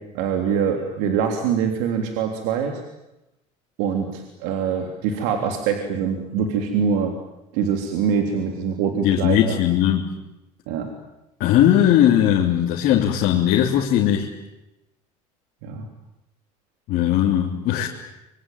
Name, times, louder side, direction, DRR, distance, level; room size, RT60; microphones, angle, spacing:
voice 1, 0.0-2.8 3.8-7.1 7.5-9.6 10.7-10.9 15.6-15.9, right 7 dB, 75° right, 4 dB, 3.4 m, -24 dB
voice 2, 9.0-10.1 11.4-14.3 16.9-17.9, left 11 dB, 60° left, -1 dB, 3.2 m, -18 dB
25.5 x 23.5 x 9.1 m, 0.91 s
supercardioid pair, 90°, 17 cm